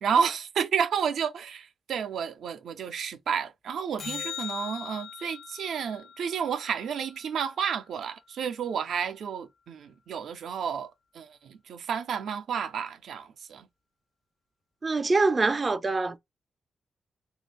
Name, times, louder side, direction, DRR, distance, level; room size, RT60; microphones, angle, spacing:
voice 1, 0.0-13.7, right 7 dB, 85° right, 0.5 m, -31 dB
sound 1, 4.0-8.5 15.0-15.1, left 9 dB, 60° left, 0.6 m, -42 dB
voice 2, 14.8-16.2, right 3 dB, 30° right, 0.5 m, -24 dB
3.3 x 2.4 x 3.2 m
cardioid pair, 90°, 0 cm